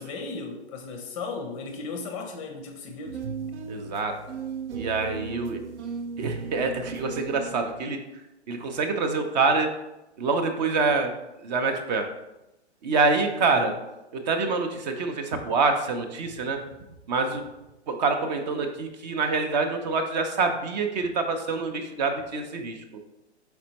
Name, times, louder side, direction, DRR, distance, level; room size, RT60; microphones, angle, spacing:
voice 1, 0.0-3.2 13.5-13.7, left 4 dB, 30° left, 4 dB, 0.5 m, -36 dB
sound 1, 3.0-7.8, right 5 dB, 85° right, 0.6 m, -36 dB
voice 2, 3.7-4.2 4.7-5.6 6.2-8.0 8.5-9.7 10.2-11.1 11.4-12.1 12.8-13.7 14.1-16.6 17.1-17.4 17.9-22.8, right 4 dB, 40° right, 6 dB, 0.6 m, -26 dB
4.4 x 4.0 x 2.9 m, 0.93 s
hypercardioid pair, 125°, 34 cm